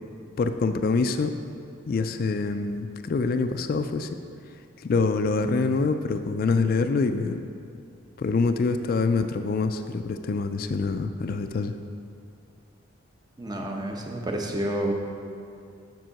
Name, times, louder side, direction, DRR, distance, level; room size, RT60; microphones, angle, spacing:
voice 1, 0.4-1.3 1.9-4.1 4.8-7.4 8.2-11.7, left 4 dB, 45° left, 8 dB, 0.3 m, -25 dB
voice 2, 13.4-14.9, right 1 dB, 20° right, 2 dB, 0.7 m, -29 dB
7.6 x 5.4 x 5.7 m, 2.5 s
head